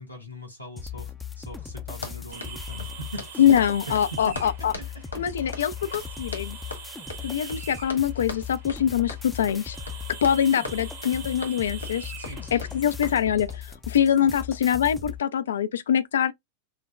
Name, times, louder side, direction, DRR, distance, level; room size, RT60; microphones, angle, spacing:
voice 1, 0.0-3.5 3.8-4.5 4.9-5.2 12.1-12.8, equal, 90° right, 1.7 m, -41 dB
sound 1, 0.8-15.2, left 7 dB, 10° left, 0.5 m, -38 dB
Run, 1.9-13.7, left 3 dB, 80° left, 1.3 m, -41 dB
sound 2, 2.3-13.1, right 6 dB, 50° right, 1.9 m, -44 dB
voice 2, 3.4-4.7 5.1-6.6 7.2-9.8 10.2-12.1 12.5-16.3, left 9 dB, 65° left, 0.4 m, -24 dB
6.3 x 2.2 x 2.2 m
figure-of-eight pair, 90°, 0 cm